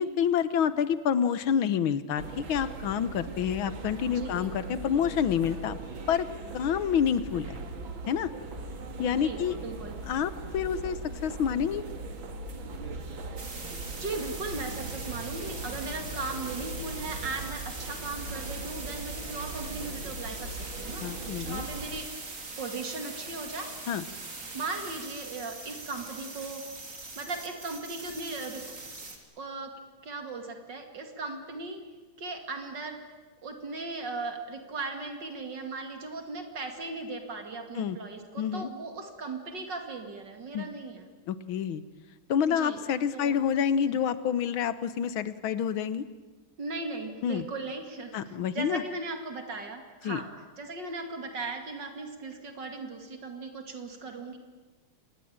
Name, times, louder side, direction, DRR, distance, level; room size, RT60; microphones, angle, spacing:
voice 1, 0.0-5.8 6.1-6.3 6.5-7.6 8.1-8.3 9.0-9.6 10.1-11.8 21.0-21.7 23.9-24.0 37.8-38.0 38.4-38.7 40.5-40.7 41.3-41.8 42.3-46.0 47.2-47.5 48.1-48.8 50.0-50.2, left 8 dB, 85° left, 14 dB, 1.9 m, -28 dB
sound 1, 2.2-22.0, right 2 dB, 75° right, 2.7 m, -40 dB
voice 2, 4.1-4.5 9.1-10.0 14.0-21.1 21.4-22.1 22.6-23.7 24.5-26.6 27.2-28.6 29.4-29.7 30.0-31.8 32.2-33.0 33.4-41.1 42.5-42.8 43.1-43.4 43.9-44.0 46.6-50.3 50.6-54.4, right 3 dB, 60° right, 5 dB, 3.0 m, -37 dB
sound 2, 13.4-29.2, right 3 dB, 40° right, 3.2 m, -42 dB
25.5 x 20.0 x 8.9 m, 1.3 s
omnidirectional pair, 2.2 m